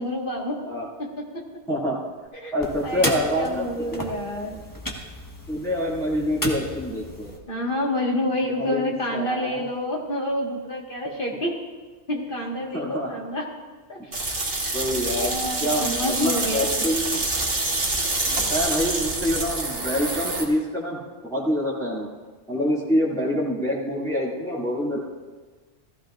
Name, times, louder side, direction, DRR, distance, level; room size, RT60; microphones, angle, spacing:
voice 1, 0.0-0.6 1.0-1.4 2.4-2.5 2.8-4.5 7.5-11.6 12.1-13.5 13.9-14.0 14.6-14.8 15.2-16.9, left 1 dB, 55° left, -1 dB, 2.0 m, -28 dB
voice 2, 1.7-2.0 2.5-4.1 5.5-7.3 8.6-9.6 12.7-13.1 14.7-17.2 18.3-22.1 22.5-25.0, equal, 5° left, -9 dB, 2.5 m, -26 dB
sound 1, 2.6-7.4, left 1 dB, 20° left, 1.3 m, -33 dB
sound 2, 14.1-20.4, right 2 dB, 65° right, 2.0 m, -26 dB
16.0 x 15.0 x 2.5 m, 1.3 s
omnidirectional pair, 1.1 m